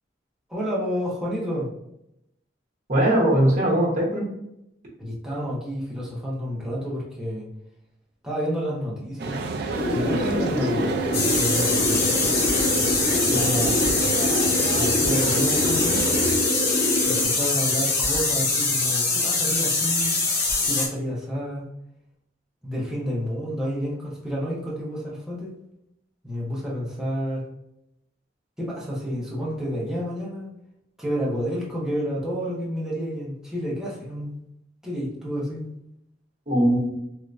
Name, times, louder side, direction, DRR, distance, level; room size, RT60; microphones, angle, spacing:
voice 1, 0.5-1.7 5.0-7.5 8.2-9.5 9.9-12.3 12.8-12.9 13.1-13.9 14.7-16.1 17.1-20.1 20.6-21.6 22.6-25.5 26.2-27.4 28.6-30.5 31.0-34.3 34.8-35.6, equal, 5° right, -6 dB, 1.0 m, -30 dB
voice 2, 2.9-4.3 36.5-37.0, right 1 dB, 45° right, -4 dB, 1.1 m, -20 dB
sound 1, 9.2-16.4, right 3 dB, 60° right, 0.4 m, -31 dB
sound 2, 9.7-17.2, left 1 dB, 35° left, 1.1 m, -27 dB
sound 3, 11.1-20.9, left 3 dB, 55° left, 0.8 m, -23 dB
3.3 x 2.9 x 2.5 m, 0.81 s
head